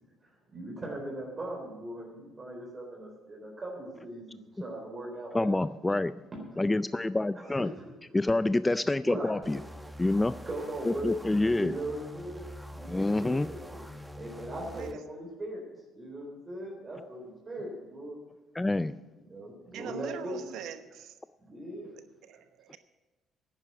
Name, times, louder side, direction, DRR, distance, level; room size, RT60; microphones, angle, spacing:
voice 1, 0.2-5.5 6.3-6.7 7.3-7.9 9.0-9.4 10.5-11.2 11.5-13.6 14.1-15.6 16.0-18.2 19.2-20.4 21.4-21.9, right 1 dB, 30° right, -1 dB, 3.9 m, -39 dB
voice 2, 5.3-6.1 6.6-7.7 8.1-9.6 10.0-10.3 10.9-11.7 12.9-13.5 18.6-18.9, left 2 dB, 15° left, 14 dB, 0.4 m, -27 dB
sound 1, 9.4-14.9, equal, 5° right, 1.0 m, -45 dB
voice 3, 14.7-15.0 19.7-21.2 21.9-22.8, right 9 dB, 75° right, 10 dB, 1.0 m, -43 dB
11.0 x 9.8 x 7.9 m, 1.1 s
supercardioid pair, 80°, 0 cm